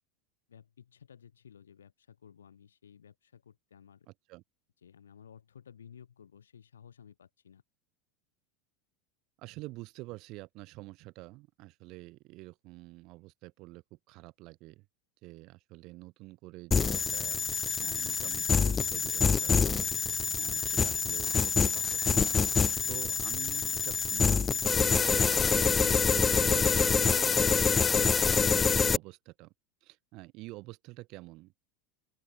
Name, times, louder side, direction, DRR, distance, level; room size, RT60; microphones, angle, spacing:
voice 1, 0.5-4.1 4.8-7.6, left 8 dB, 85° left, 6.9 m, -55 dB
voice 2, 9.4-14.8 15.2-17.4 17.8-19.9 20.4-22.4 22.9-29.5 29.8-31.5, right 21 dB, 55° right, 6.8 m, -47 dB
sound 1, 16.7-29.0, left 5 dB, 20° left, 0.9 m, -26 dB
open air
hypercardioid pair, 85°, 0 cm